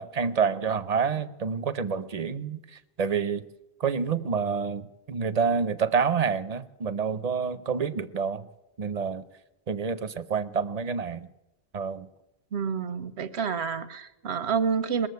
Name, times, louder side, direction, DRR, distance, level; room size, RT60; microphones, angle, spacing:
voice 1, 0.0-2.6 3.0-3.4 3.8-8.5 8.8-9.2 9.7-11.3 11.7-12.1, right 6 dB, 45° right, 13 dB, 0.6 m, -28 dB
voice 2, 12.5-15.1, right 6 dB, 85° right, 13 dB, 1.1 m, -28 dB
20.5 x 7.3 x 9.4 m, 0.98 s
omnidirectional pair, 1.1 m